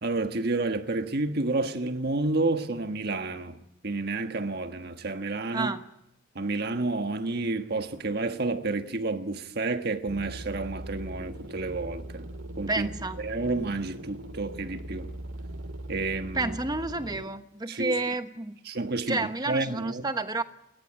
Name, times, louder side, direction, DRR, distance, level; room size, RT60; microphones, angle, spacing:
voice 1, 0.0-5.7 6.3-12.3 12.6-12.9 13.2-15.1 15.9-16.6 17.7-18.0 18.6-20.1, right 3 dB, 55° right, 1.5 m, -30 dB
voice 2, 5.5-5.8 12.7-13.2 16.3-18.6 19.1-20.4, right 2 dB, 20° right, 1.2 m, -30 dB
sound 1, 10.1-17.2, right 1 dB, 85° right, 2.0 m, -40 dB
29.5 x 14.0 x 10.0 m
head